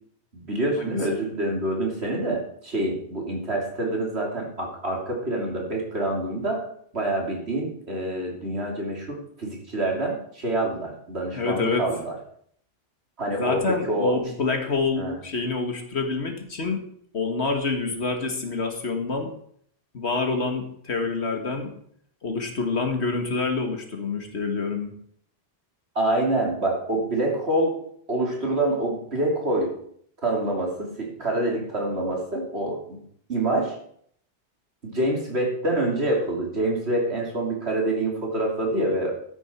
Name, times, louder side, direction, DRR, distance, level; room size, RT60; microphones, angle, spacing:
voice 1, 0.3-6.7 6.9-12.1 13.2-14.2 15.0-15.2 26.0-27.8 28.1-29.8 30.2-33.0 33.3-33.8 34.8-39.2, right 1 dB, 65° right, 0 dB, 3.5 m, -26 dB
voice 2, 11.3-11.8 13.4-16.8 17.1-19.3 19.9-21.8 22.2-24.9, left 4 dB, 70° left, 5 dB, 2.2 m, -27 dB
13.0 x 10.0 x 4.6 m, 0.63 s
omnidirectional pair, 1.2 m